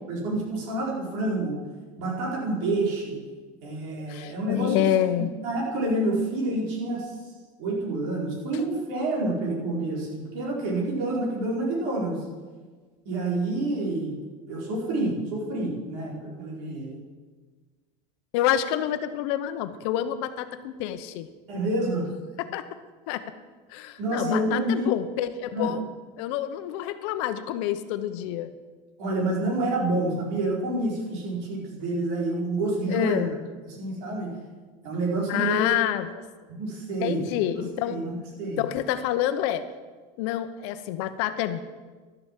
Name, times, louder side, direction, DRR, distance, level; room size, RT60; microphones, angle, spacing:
voice 1, 0.1-1.6 2.0-3.2 3.6-4.8 5.1-7.1 7.6-12.2 13.0-14.2 14.5-17.0 21.5-22.1 24.0-24.9 25.5-25.7 29.0-33.3 33.8-34.3 34.8-35.7 36.6-37.2 37.5-38.6, right 2 dB, 65° right, -3 dB, 4.6 m, -28 dB
voice 2, 4.1-5.3 18.3-21.3 22.4-22.7 23.1-23.3 23.7-25.8 26.2-28.5 32.9-33.3 35.3-36.2 37.0-38.0 38.6-39.7 40.2-41.6, left 11 dB, 65° left, 11 dB, 0.9 m, -27 dB
12.5 x 7.9 x 7.4 m, 1.4 s
cardioid pair, 165°, 16 cm